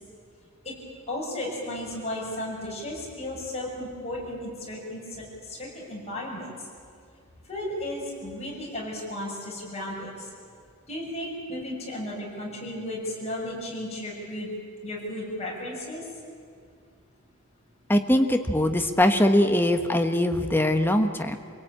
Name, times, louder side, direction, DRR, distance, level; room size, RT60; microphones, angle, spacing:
voice 1, 1.1-6.5 7.5-10.3 10.9-14.5 14.8-16.1, left 1 dB, 30° left, -4 dB, 6.8 m, -34 dB
voice 2, 17.9-21.4, left 1 dB, 10° left, 6 dB, 1.2 m, -22 dB
27.0 x 18.0 x 8.9 m, 2.2 s
head